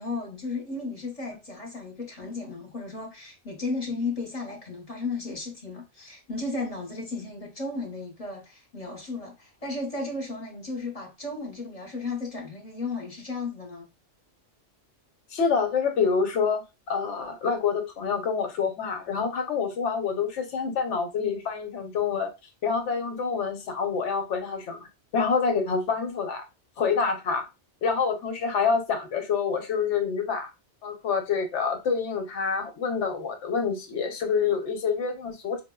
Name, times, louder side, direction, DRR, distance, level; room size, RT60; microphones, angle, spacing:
voice 1, 0.0-13.9, left 3 dB, 35° left, 0.9 m, -34 dB
voice 2, 15.3-22.3 22.6-24.9 25.1-26.4 26.8-27.4 27.8-30.5 30.8-35.6, left 5 dB, 75° left, 1.0 m, -27 dB
4.5 x 2.1 x 2.2 m
omnidirectional pair, 1.2 m